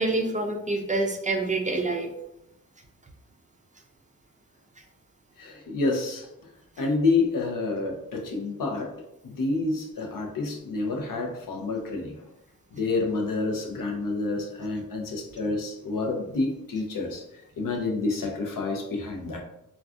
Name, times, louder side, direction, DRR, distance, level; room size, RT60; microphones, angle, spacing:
voice 1, 0.0-2.1, right 2 dB, 25° right, 2 dB, 0.4 m, -26 dB
voice 2, 5.4-6.3 6.8-8.9 9.2-12.1 12.7-17.2 17.6-19.4, left 3 dB, 80° left, 2 dB, 0.6 m, -28 dB
3.5 x 2.3 x 2.4 m, 0.84 s
wide cardioid pair, 100°, 32 cm